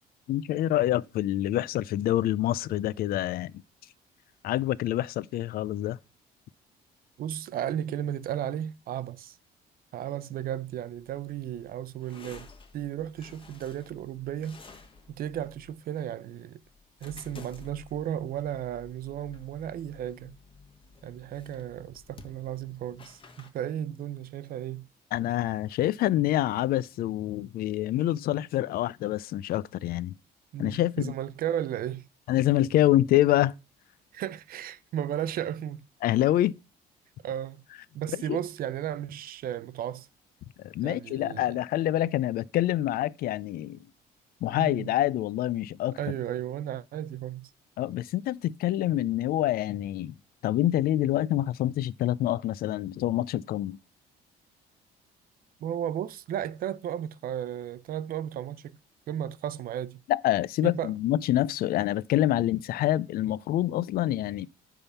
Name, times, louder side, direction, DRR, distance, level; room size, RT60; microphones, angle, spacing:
voice 1, 0.3-3.5 4.4-6.0 25.1-30.1 30.6-31.1 32.3-33.5 36.0-36.5 38.3-38.4 40.6-43.8 44.4-46.0 47.8-50.1 50.4-53.8 60.1-64.5, left 13 dB, 60° left, 0.4 m, -26 dB
voice 2, 7.2-9.4 9.9-14.6 15.1-16.6 17.0-20.4 21.0-24.9 30.5-32.1 34.1-35.8 37.2-37.6 37.9-40.1 40.8-41.6 44.6-44.9 46.0-47.5 55.6-58.8 59.1-60.0 60.6-60.9, right 10 dB, 60° right, 0.6 m, -34 dB
sound 1, 10.8-23.5, left 4 dB, 30° left, 1.3 m, -53 dB
9.7 x 3.7 x 6.9 m
cardioid pair, 110°, 17 cm